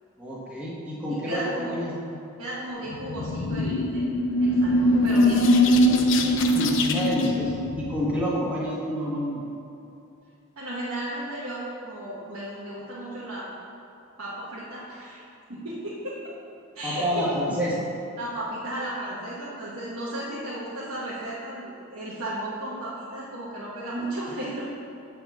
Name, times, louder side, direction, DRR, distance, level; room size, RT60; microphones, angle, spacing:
voice 1, 0.2-1.9 6.5-9.6 16.8-17.8, equal, 5° right, -7 dB, 1.2 m, -28 dB
voice 2, 1.1-1.8 2.4-6.0 10.6-13.5 14.2-15.2 15.5-16.4 16.7-17.3 18.2-24.7, right 1 dB, 90° right, -8 dB, 1.2 m, -34 dB
sound 1, 2.9-8.3, left 1 dB, 60° left, 0.5 m, -22 dB
7.7 x 3.5 x 6.4 m, 2.8 s
head